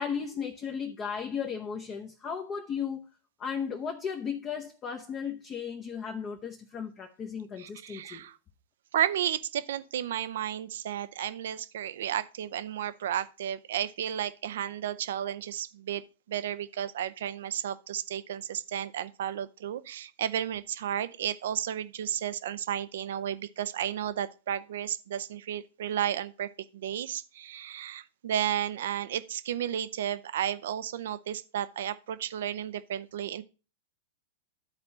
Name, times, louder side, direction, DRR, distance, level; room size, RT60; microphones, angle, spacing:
voice 1, 0.0-3.0 3.4-8.3, left 7 dB, 30° left, 1.0 m, -35 dB
voice 2, 7.6-8.4 8.9-16.0 16.3-33.4, right 10 dB, 65° right, 0.6 m, -33 dB
11.5 x 4.3 x 4.1 m
hypercardioid pair, 105°, 0 cm